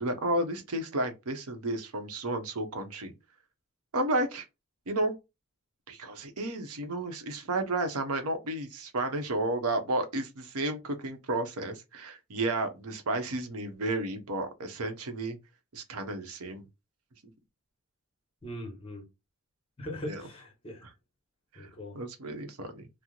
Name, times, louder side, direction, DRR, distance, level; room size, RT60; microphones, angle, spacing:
voice 1, 0.0-3.1 3.9-4.5 4.9-5.1 5.9-15.4 15.7-16.6 20.0-20.3 20.8-20.9 21.5-21.7 21.9-22.9, right 2 dB, 90° right, 0.8 m, -32 dB
voice 2, 18.4-19.0 19.8-20.8 21.6-22.0, left 1 dB, 25° left, 0.9 m, -40 dB
2.9 x 2.0 x 3.8 m
head